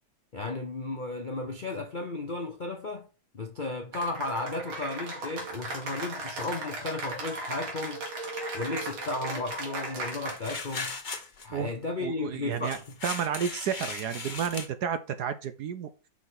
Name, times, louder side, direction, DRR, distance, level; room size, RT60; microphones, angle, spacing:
voice 1, 0.3-3.1 3.3-8.0 8.5-10.9 11.4-12.8, left 2 dB, 70° left, 0.4 m, -34 dB
Cheering / Applause, 3.9-10.6, right 2 dB, 90° right, 2.9 m, -36 dB
sound 1, 10.3-11.5 12.6-14.7, left 4 dB, 35° left, 0.8 m, -37 dB
voice 2, 12.0-15.9, right 8 dB, 70° right, 1.0 m, -31 dB
5.9 x 4.9 x 6.0 m
omnidirectional pair, 2.2 m